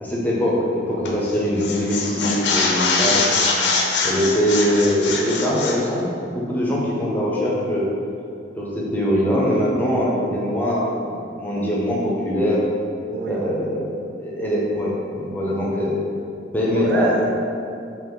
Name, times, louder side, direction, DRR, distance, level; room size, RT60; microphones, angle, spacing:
voice 1, 0.0-3.2 4.0-7.9 8.6-11.1 11.4-12.6 13.3-16.0 16.5-17.1, equal, 10° left, -5 dB, 0.5 m, -22 dB
sound 1, 1.0-1.3 1.6-5.8, left 3 dB, 65° left, 0.5 m, -22 dB
voice 2, 3.0-3.3 4.0-4.3 13.1-13.4 14.0-14.2 16.7-17.5, right 2 dB, 65° right, 2 dB, 0.4 m, -28 dB
3.8 x 3.0 x 3.0 m, 2.5 s
head